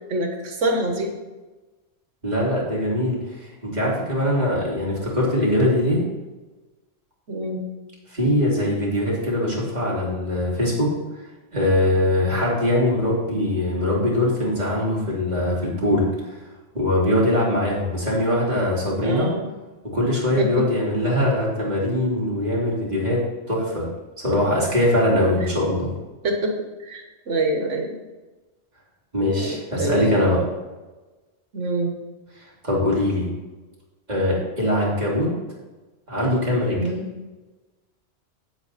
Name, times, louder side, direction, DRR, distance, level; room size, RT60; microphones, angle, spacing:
voice 1, 0.1-1.1 7.3-7.7 19.0-19.5 20.4-20.7 26.2-26.6 26.8-28.0 29.3-30.2 31.5-31.9 36.7-37.1, right 1 dB, 90° right, 3 dB, 1.7 m, -25 dB
voice 2, 2.2-6.0 8.1-10.9 11.5-16.4 16.7-19.3 19.9-23.2 23.5-23.9 24.2-25.9 29.1-30.4 32.4-33.3 34.1-35.3 36.1-36.8, left 1 dB, 35° right, -5 dB, 3.0 m, -22 dB
8.7 x 8.0 x 4.2 m, 1.2 s
omnidirectional pair, 1.2 m